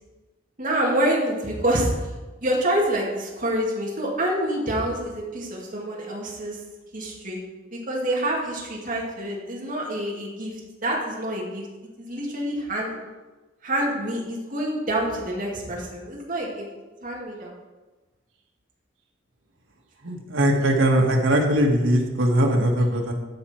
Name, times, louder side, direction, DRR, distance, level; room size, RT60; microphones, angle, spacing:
voice 1, 0.6-2.1 2.4-6.6 6.9-7.4 7.7-11.7 12.0-13.0 13.6-16.6 17.0-17.5, right 1 dB, 45° right, -3 dB, 2.4 m, -27 dB
voice 2, 20.0-23.1, right 1 dB, 90° right, 1 dB, 1.6 m, -20 dB
12.5 x 5.8 x 4.4 m, 1.2 s
head